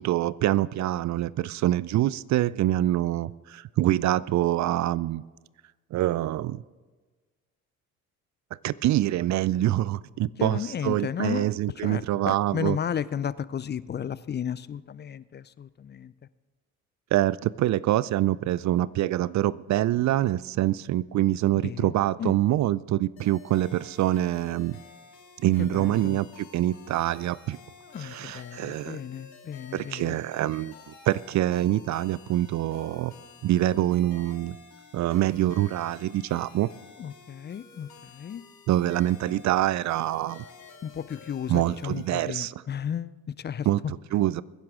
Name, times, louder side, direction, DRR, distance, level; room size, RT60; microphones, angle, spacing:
voice 1, 0.0-5.2 5.9-6.6 8.6-12.8 17.1-24.8 25.4-27.6 28.0-29.0 29.7-33.1 33.4-34.6 34.9-36.7 38.7-40.4 41.5-42.5 43.7-44.4, right 14 dB, 45° right, 21 dB, 0.4 m, -25 dB
voice 2, 10.4-11.5 11.8-16.1 21.6-21.9 22.2-22.4 25.7-26.2 27.9-30.2 37.0-38.4 40.8-43.7, left 8 dB, 25° left, 18 dB, 0.4 m, -34 dB
sound 1, 23.2-42.3, left 5 dB, 60° left, 3.4 m, -51 dB
22.0 x 10.5 x 3.7 m, 1.3 s
hypercardioid pair, 55°, 43 cm